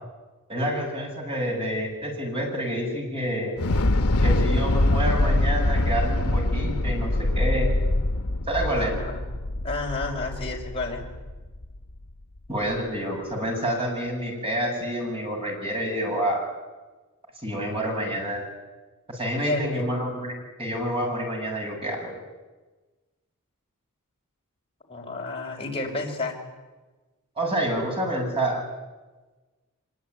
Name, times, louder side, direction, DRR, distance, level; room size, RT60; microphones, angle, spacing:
voice 1, 0.5-3.6 4.2-7.7 8.5-8.9 12.5-16.4 17.4-18.4 19.1-22.1 27.4-28.6, equal, 25° right, 1 dB, 8.0 m, -28 dB
Thunder / Explosion, 3.6-11.8, left 1 dB, 75° left, 1.0 m, -24 dB
voice 2, 8.7-9.2 9.6-11.0 19.4-19.9 24.9-26.3, left 3 dB, 25° left, 0 dB, 5.7 m, -31 dB
24.5 x 23.0 x 9.9 m, 1.2 s
head